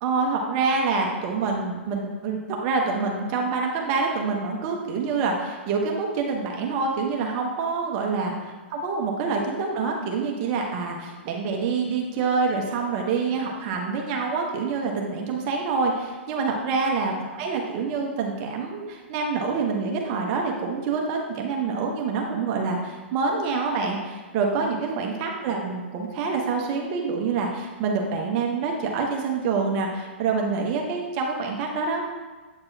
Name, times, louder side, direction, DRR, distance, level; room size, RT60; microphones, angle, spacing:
voice 1, 0.0-32.1, right 4 dB, 40° right, 0 dB, 1.0 m, -26 dB
8.2 x 5.2 x 2.8 m, 1.3 s
hypercardioid pair, 115°, 6 cm